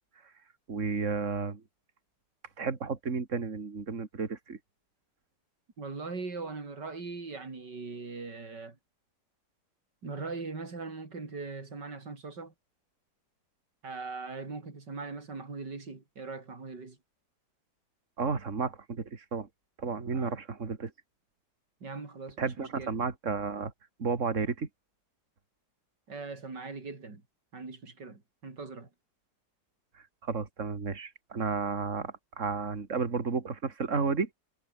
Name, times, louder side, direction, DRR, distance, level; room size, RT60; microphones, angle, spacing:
voice 1, 0.7-1.6 2.6-4.6 18.2-19.5 19.8-20.9 22.4-23.7 24.0-24.7 30.2-34.3, right 5 dB, 40° right, 2.8 m, -32 dB
voice 2, 5.8-8.8 10.0-12.5 13.8-17.0 20.1-20.4 21.8-23.0 26.1-27.2 27.5-28.9, right 4 dB, 65° right, 4.7 m, -40 dB
omnidirectional pair, 2.0 m